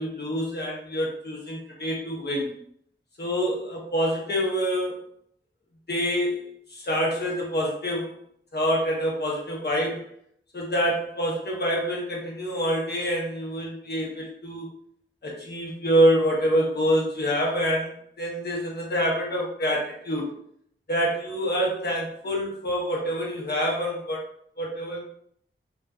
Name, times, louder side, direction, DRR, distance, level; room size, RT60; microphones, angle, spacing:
voice 1, 0.0-2.5 3.2-5.0 5.9-6.4 6.7-8.2 8.5-10.0 10.5-14.7 15.2-20.3 20.9-24.2 24.6-25.0, equal, 50° left, -2 dB, 0.8 m, -26 dB
2.3 x 2.3 x 2.3 m, 0.67 s
wide cardioid pair, 45°, 21 cm